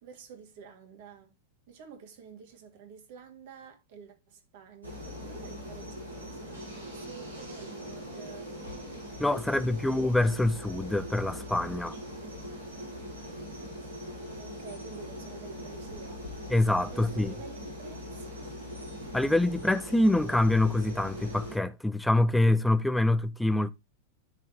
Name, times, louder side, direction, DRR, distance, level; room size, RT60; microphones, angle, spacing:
voice 1, 0.0-1.4 1.7-8.5 14.4-16.3 16.9-18.5, right 6 dB, 50° right, 2.8 m, -50 dB
sound 1, 4.8-21.6, equal, 85° right, 6.7 m, -41 dB
voice 2, 9.2-12.0 16.5-17.3 19.1-23.7, left 1 dB, 5° left, 0.9 m, -25 dB
13.0 x 4.5 x 3.6 m
figure-of-eight pair, 90°, 0 cm